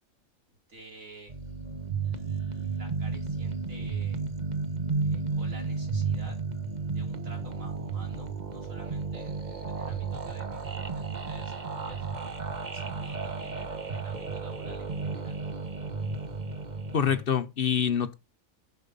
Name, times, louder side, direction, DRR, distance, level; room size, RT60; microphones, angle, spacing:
voice 1, 0.7-1.3 2.0-4.2 5.0-6.4 6.9-12.1 12.7-15.4, right 2 dB, 65° right, 4.6 m, -51 dB
sound 1, 1.3-17.2, right 4 dB, 35° right, 1.2 m, -33 dB
voice 2, 16.9-18.1, left 8 dB, 50° left, 0.9 m, -26 dB
10.5 x 6.6 x 5.4 m
omnidirectional pair, 1.5 m